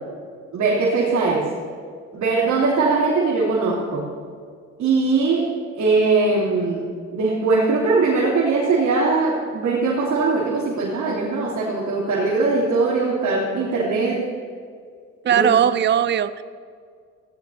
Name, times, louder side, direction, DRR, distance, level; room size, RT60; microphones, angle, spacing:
voice 1, 0.5-1.5 2.1-4.1 4.8-14.3 15.3-15.6, right 3 dB, 70° right, -7 dB, 3.3 m, -21 dB
voice 2, 15.2-16.4, right 9 dB, 35° right, 14 dB, 0.5 m, -18 dB
18.5 x 16.5 x 2.8 m, 2.1 s
cardioid pair, 90°, 30 cm